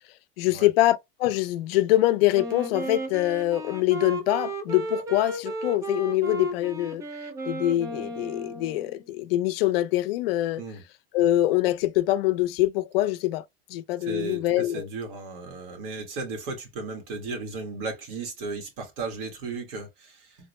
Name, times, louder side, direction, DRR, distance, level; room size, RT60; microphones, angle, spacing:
voice 1, 0.4-7.0 7.5-10.6 11.1-13.4 13.7-14.9, left 15 dB, 80° left, 0.6 m, -24 dB
Wind instrument woodwind instrument, 2.3-9.0, right 1 dB, 10° right, 0.4 m, -34 dB
voice 2, 14.0-20.5, right 3 dB, 60° right, 1.6 m, -35 dB
3.7 x 2.1 x 3.0 m
supercardioid pair, 155°, 29 cm